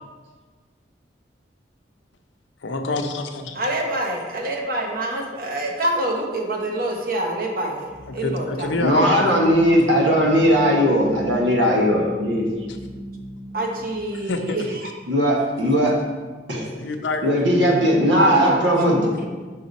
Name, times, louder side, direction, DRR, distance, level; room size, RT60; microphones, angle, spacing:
voice 1, 2.6-3.6 8.1-9.3 12.7-12.8 14.1-14.7 16.8-17.2 19.2-19.3, left 2 dB, 85° left, 5 dB, 0.6 m, -27 dB
voice 2, 3.5-8.7 13.5-14.6 18.2-19.3, right 1 dB, 50° right, 0 dB, 1.0 m, -26 dB
sound 1, 7.9-13.9, equal, 20° right, 1.3 m, -39 dB
voice 3, 8.8-12.4 15.1-16.0 16.5-16.7 17.2-19.1, equal, 85° right, -1 dB, 1.3 m, -18 dB
5.6 x 5.3 x 4.0 m, 1.4 s
head